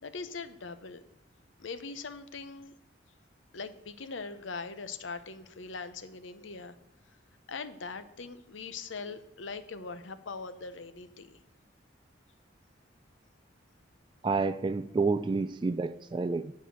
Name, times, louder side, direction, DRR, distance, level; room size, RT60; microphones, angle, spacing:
voice 1, 0.0-1.0 1.6-2.7 3.5-6.8 7.5-11.4, left 4 dB, 80° left, 11 dB, 0.8 m, -41 dB
voice 2, 14.2-16.5, right 4 dB, 25° right, 12 dB, 0.3 m, -29 dB
10.5 x 4.9 x 7.8 m, 0.82 s
head